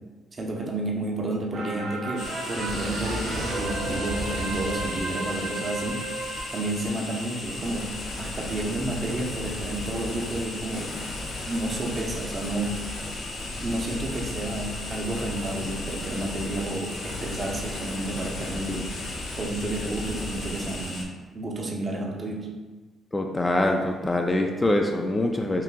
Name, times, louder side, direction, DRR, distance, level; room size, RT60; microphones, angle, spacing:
voice 1, 0.3-6.0 6.5-7.9 8.2-10.9 11.5-12.8 13.6-18.9 19.4-21.0 21.3-22.5, right 1 dB, 35° right, -1 dB, 0.7 m, -31 dB
sound 1, 1.5-8.2 8.6-8.7, right 2 dB, 80° right, 0.9 m, -34 dB
sound 2, 2.2-21.0, left 2 dB, 75° left, 0.7 m, -35 dB
voice 2, 23.1-25.6, left 1 dB, 20° left, 3 dB, 0.3 m, -24 dB
5.6 x 2.5 x 2.2 m, 1.3 s
cardioid pair, 90°, 0 cm